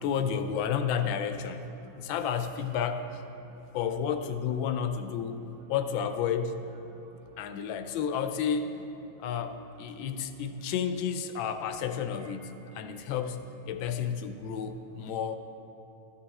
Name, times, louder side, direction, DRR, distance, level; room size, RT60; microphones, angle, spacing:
voice 1, 0.0-1.6 2.0-3.2 3.7-5.4 5.7-6.6 7.4-8.8 9.2-15.4, left 7 dB, 85° left, 9 dB, 1.3 m, -31 dB
voice 2, 3.4-3.8 6.9-7.4 9.1-9.2 9.9-10.1 12.2-13.1 13.7-13.8, right 4 dB, 75° right, 0 dB, 1.3 m, -57 dB
13.0 x 5.5 x 4.1 m, 3.0 s
omnidirectional pair, 2.1 m